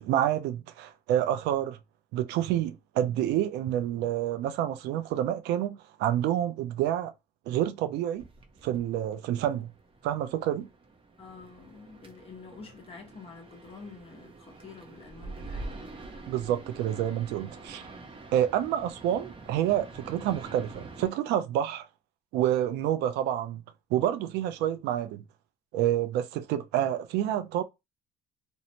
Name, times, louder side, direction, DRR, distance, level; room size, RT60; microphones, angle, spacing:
voice 1, 0.0-1.8 2.1-7.1 7.5-8.3 8.6-9.7 10.0-10.7 16.3-17.8 18.3-21.9 22.3-23.6 23.9-25.2 25.7-27.6, right 11 dB, 85° right, 0.4 m, -28 dB
sound 1, 8.1-21.1, right 3 dB, 30° right, 0.6 m, -46 dB
voice 2, 11.2-15.8, left 4 dB, 35° left, 1.0 m, -48 dB
2.6 x 2.1 x 2.8 m
cardioid pair, 110°, 17 cm